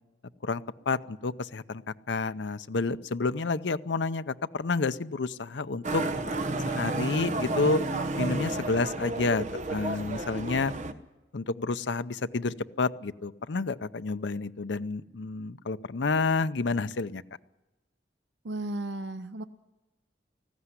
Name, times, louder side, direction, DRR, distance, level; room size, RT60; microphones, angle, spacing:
voice 1, 0.4-6.0 6.6-7.8 8.2-10.7 11.3-17.2, left 3 dB, 80° left, 12 dB, 0.7 m, -29 dB
Motorcycle, 5.8-10.9, right 2 dB, 45° right, 1.1 m, -31 dB
voice 2, 18.4-19.4, right 1 dB, 85° right, 10 dB, 0.7 m, -34 dB
19.0 x 15.5 x 9.8 m, 1.1 s
head